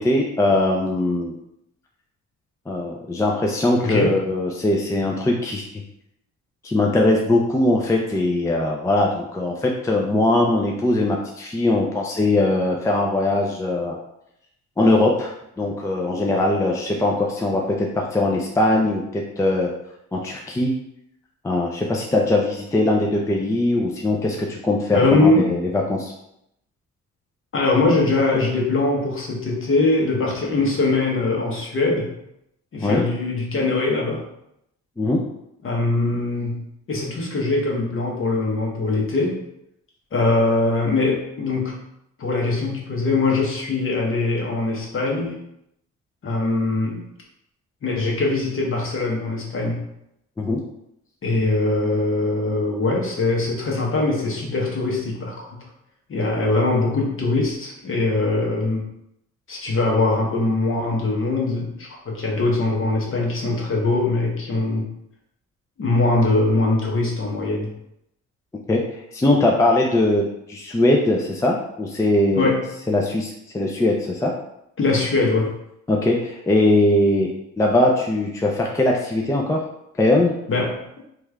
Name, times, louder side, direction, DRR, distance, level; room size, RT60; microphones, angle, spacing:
voice 1, 0.0-1.3 2.7-5.6 6.6-14.0 14.8-19.7 20.1-20.7 21.4-26.1 32.8-33.1 35.0-35.2 50.4-50.6 68.7-72.5 72.9-74.3 75.9-77.3 77.6-79.6 80.0-80.3, left 2 dB, 10° left, 0 dB, 0.4 m, -21 dB
voice 2, 3.8-4.1 24.9-25.5 27.5-32.1 32.7-34.2 35.6-36.6 36.9-39.4 40.1-41.8 42.2-45.3 46.2-47.0 47.8-49.8 51.2-55.3 56.1-58.8 59.5-64.9 65.8-67.7 72.4-72.7 74.8-75.5 80.5-80.7, left 2 dB, 45° left, -1 dB, 1.0 m, -22 dB
3.2 x 2.4 x 3.2 m, 0.80 s
cardioid pair, 90°, 30 cm